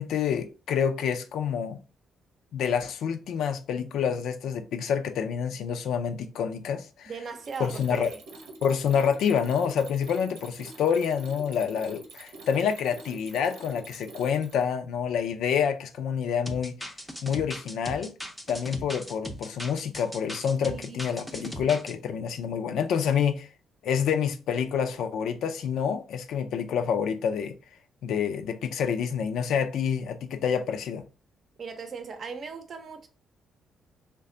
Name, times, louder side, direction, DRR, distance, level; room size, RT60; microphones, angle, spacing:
voice 1, 0.0-1.8 2.5-7.1 7.6-8.1 8.6-16.7 17.2-18.1 18.5-23.5 23.8-27.5 28.0-31.0, left 7 dB, 80° left, 0.4 m, -27 dB
voice 2, 7.1-8.2 20.6-21.7 31.6-33.1, right 5 dB, 50° right, 0.6 m, -39 dB
Mechanisms, 7.3-14.7, right 3 dB, 90° right, 0.8 m, -46 dB
sound 1, 16.5-21.9, equal, 5° left, 0.5 m, -39 dB
3.2 x 2.2 x 3.8 m
cardioid pair, 90°, 0 cm